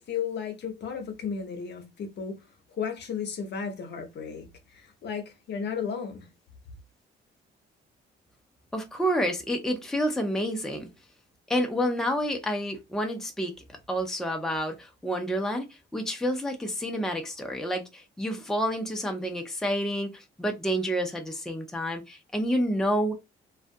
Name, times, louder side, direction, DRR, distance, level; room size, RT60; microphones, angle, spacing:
voice 1, 0.0-2.4 2.7-6.3, left 6 dB, 60° left, 0.8 m, -34 dB
voice 2, 8.7-10.9 11.5-23.1, equal, ahead, 0.5 m, -29 dB
2.4 x 2.2 x 2.5 m
cardioid pair, 90°, 20 cm